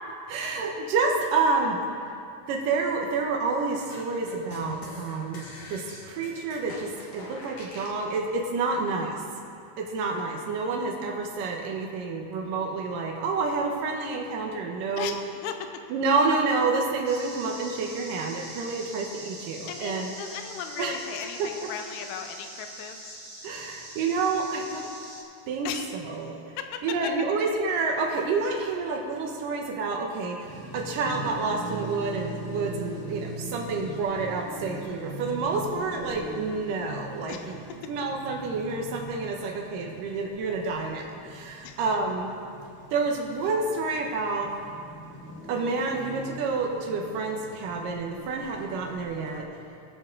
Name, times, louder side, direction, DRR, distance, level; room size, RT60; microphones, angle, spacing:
voice 1, 0.3-1.8 2.5-5.4 5.7-9.2 9.8-15.2 15.9-20.1 20.8-21.0 21.4-21.5 23.4-24.9 25.5-25.7 26.0-26.3 26.8-30.5 30.7-37.6 37.9-42.3 42.9-44.5 45.5-49.5, right 4 dB, 75° right, 1 dB, 2.2 m, -28 dB
sound 1, 3.9-8.0, left 1 dB, 60° left, 3.2 m, -43 dB
voice 2, 15.0-15.7 18.7-18.9 19.7-23.2 25.6-25.9 26.6-27.1 37.3-37.5 41.6-41.8, left 8 dB, 85° left, 6 dB, 2.8 m, -37 dB
sound 2, 17.0-25.2, right 2 dB, 45° right, 1.0 m, -43 dB
sound 3, 30.4-49.4, right 1 dB, 20° left, 2.2 m, -41 dB
20.5 x 7.0 x 3.8 m, 2.5 s
omnidirectional pair, 4.7 m